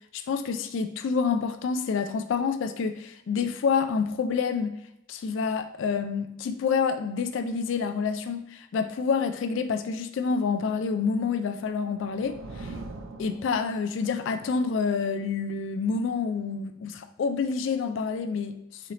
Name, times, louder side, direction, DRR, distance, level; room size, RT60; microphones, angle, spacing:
voice 1, 0.1-4.7 5.1-12.7 13.2-18.9, left 5 dB, 65° left, 9 dB, 0.3 m, -28 dB
sound 1, 11.4-14.2, right 2 dB, 75° right, 0.5 m, -42 dB
4.2 x 3.1 x 3.8 m, 0.83 s
head